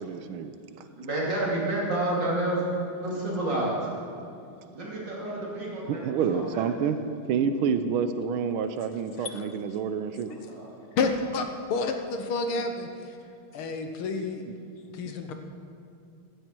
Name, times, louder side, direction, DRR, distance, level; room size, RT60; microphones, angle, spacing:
voice 1, 0.0-0.8 5.9-7.0 7.3-10.3, right 6 dB, 90° right, 10 dB, 1.6 m, -28 dB
voice 2, 0.8-2.6 2.9-3.9 4.7-6.7 10.3-10.7, right 1 dB, 55° right, -4 dB, 3.6 m, -30 dB
voice 3, 11.0-13.2 13.5-14.4 14.9-15.3, left 3 dB, 85° left, 6 dB, 2.0 m, -30 dB
15.5 x 13.0 x 4.6 m, 2.5 s
omnidirectional pair, 2.3 m